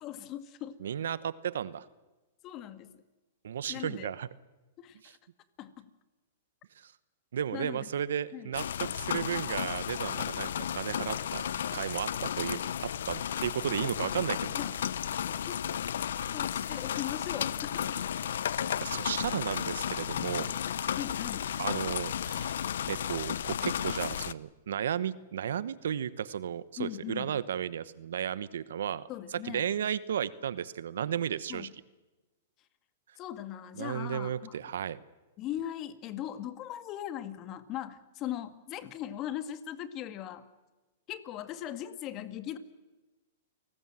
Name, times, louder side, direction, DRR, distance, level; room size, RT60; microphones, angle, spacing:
voice 1, 0.0-0.8 2.4-3.0 3.7-4.1 4.8-5.2 5.6-5.9 7.5-7.8 8.3-8.5 14.6-14.7 15.4-15.6 16.3-18.0 20.9-21.5 26.8-27.3 29.1-29.6 31.5-31.7 33.2-34.6 35.4-40.5 41.1-42.6, left 11 dB, 35° left, 10 dB, 1.9 m, -39 dB
voice 2, 0.8-1.9 3.4-4.3 5.0-5.2 6.8-6.9 7.3-14.6 16.6-16.8 18.8-20.5 21.6-22.6 22.9-31.7 33.8-35.0, right 9 dB, 75° right, 17 dB, 1.0 m, -34 dB
sound 1, 8.5-24.3, left 9 dB, 75° left, 0.7 m, -33 dB
29.5 x 19.0 x 7.6 m, 1.2 s
hypercardioid pair, 125°, 0 cm